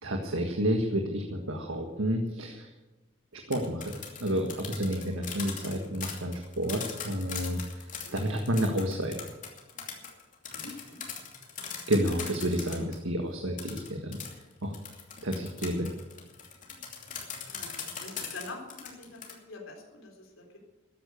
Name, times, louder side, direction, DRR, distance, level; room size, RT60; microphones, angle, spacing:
voice 1, 0.0-2.7 3.5-4.5 4.7-7.6 8.1-9.1 11.9-14.2 14.6-14.7 15.2-15.9, equal, 85° right, 3 dB, 1.7 m, -30 dB
sound 1, 3.4-13.0 13.6-19.3, left 7 dB, 40° left, 2.7 m, -40 dB
voice 2, 5.4-5.7 8.0-8.2 10.5-11.0 12.6-12.9 17.5-17.7 18.0-20.6, left 3 dB, 85° left, 1 dB, 3.9 m, -46 dB
14.0 x 10.0 x 8.1 m, 1.1 s
head